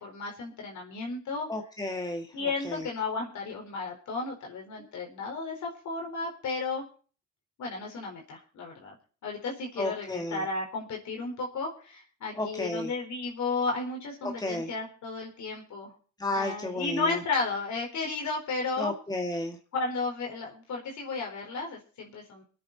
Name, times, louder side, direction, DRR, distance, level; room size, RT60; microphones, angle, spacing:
voice 1, 0.0-1.5 2.3-6.8 7.6-9.0 9.2-15.9 16.3-18.9 19.7-22.4, left 3 dB, 70° left, 0 dB, 4.3 m, -33 dB
voice 2, 1.5-2.3 9.8-10.4 12.4-12.9 14.2-14.7 16.2-17.2 18.8-19.6, left 1 dB, 15° left, 3 dB, 1.9 m, -32 dB
24.0 x 9.2 x 4.1 m, 0.39 s
cardioid pair, 90°, 30 cm